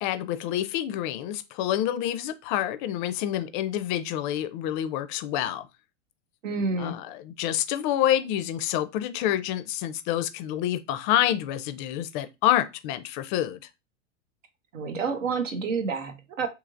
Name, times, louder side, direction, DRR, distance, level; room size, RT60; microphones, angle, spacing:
voice 1, 0.0-5.6 6.8-13.6, left 12 dB, 40° left, 0.4 m, -27 dB
voice 2, 6.4-6.9 14.7-16.5, right 4 dB, 80° right, 0.8 m, -29 dB
2.8 x 2.6 x 2.5 m
hypercardioid pair, 95°, 38 cm